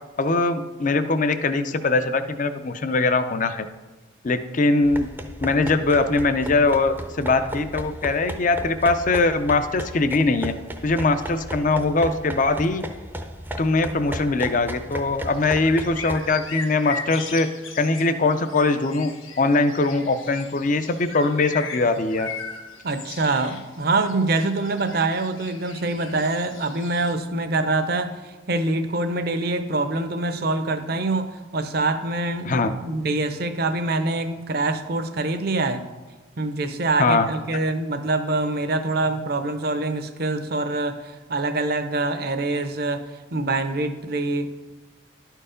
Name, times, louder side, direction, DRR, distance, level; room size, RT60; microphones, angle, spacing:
voice 1, 0.2-3.7 4.2-5.1 5.4-10.5 10.8-12.8 13.6-17.5 17.7-19.1 19.4-22.3 32.4-32.7 37.0-37.3, left 3 dB, 40° left, 10 dB, 0.5 m, -21 dB
sound 1, 4.8-16.3, equal, 10° right, 0.5 m, -35 dB
sound 2, 15.3-27.1, left 5 dB, 85° left, 1.3 m, -38 dB
voice 2, 22.8-35.9 36.4-44.5, right 2 dB, 50° right, 9 dB, 0.6 m, -25 dB
11.5 x 4.6 x 5.0 m, 1.2 s
head